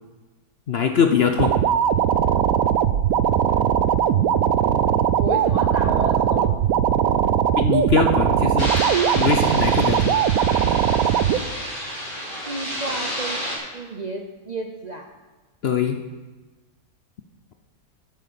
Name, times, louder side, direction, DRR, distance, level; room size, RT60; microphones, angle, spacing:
voice 1, 0.7-1.5 7.6-8.7 9.1-10.1 15.6-16.0, left 6 dB, 55° left, 6 dB, 0.7 m, -21 dB
sound 1, 1.4-11.4, right 9 dB, 70° right, 1.0 m, -20 dB
voice 2, 5.2-6.5 10.3-10.5 12.5-13.4 13.7-15.1, right 2 dB, 45° right, 3 dB, 0.6 m, -31 dB
sound 2, 8.6-13.6, equal, 15° left, 3.9 m, -30 dB
9.4 x 9.0 x 6.8 m, 1.2 s
omnidirectional pair, 1.6 m